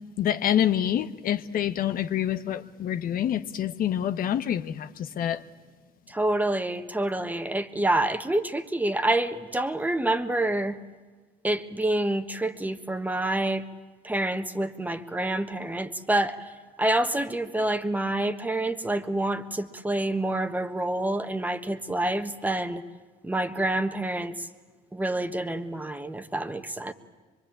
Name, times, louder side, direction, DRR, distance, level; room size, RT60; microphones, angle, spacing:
voice 1, 0.2-5.4, left 10 dB, 55° left, 1.0 m, -27 dB
voice 2, 6.1-10.8 11.4-13.7 14.0-16.5 16.8-22.8 23.2-24.5 24.9-26.9, right 1 dB, 10° right, 1.4 m, -27 dB
24.5 x 24.0 x 8.8 m
cardioid pair, 110°, 17 cm